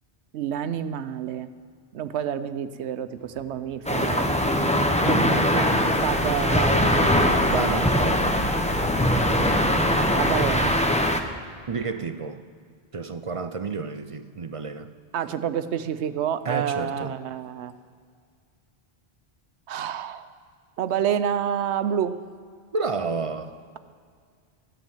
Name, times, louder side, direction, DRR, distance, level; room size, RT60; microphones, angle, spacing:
voice 1, 0.3-1.5 1.9-4.5 6.0-7.7 10.1-10.8 15.1-17.7 19.7-20.3 20.8-22.2, right 9 dB, 85° right, 11 dB, 0.9 m, -28 dB
sound 1, 3.2-11.0, right 1 dB, 45° left, 1.0 m, -36 dB
sound 2, 3.9-11.2, left 1 dB, 5° left, 0.7 m, -22 dB
voice 2, 5.0-5.7 7.5-8.2 11.7-12.4 12.9-14.9 16.5-17.1 22.7-23.5, right 4 dB, 45° right, 10 dB, 0.5 m, -30 dB
14.5 x 9.0 x 7.2 m, 2.1 s
omnidirectional pair, 1.1 m